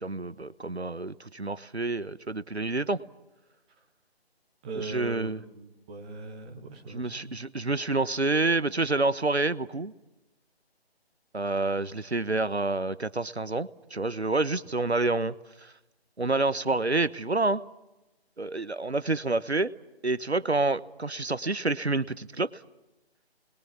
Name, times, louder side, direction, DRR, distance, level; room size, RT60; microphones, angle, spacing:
voice 1, 0.0-3.0 4.7-5.4 6.9-9.9 11.3-15.3 16.2-17.6 18.4-19.7 20.0-22.5, right 3 dB, 85° right, 15 dB, 1.1 m, -28 dB
voice 2, 4.6-7.4, right 3 dB, 5° right, -1 dB, 1.0 m, -40 dB
28.5 x 21.5 x 7.2 m, 1.0 s
figure-of-eight pair, 155°, 32 cm